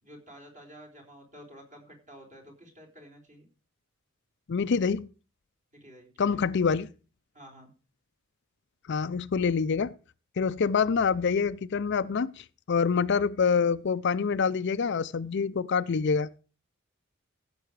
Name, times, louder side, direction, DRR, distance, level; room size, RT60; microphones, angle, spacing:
voice 1, 0.0-3.5 5.7-6.4 7.3-7.7, equal, 35° right, 4.0 m, -51 dB
voice 2, 4.5-5.1 6.2-6.9 8.9-9.9 10.4-16.3, left 5 dB, 55° left, 0.5 m, -26 dB
15.0 x 6.9 x 4.7 m
head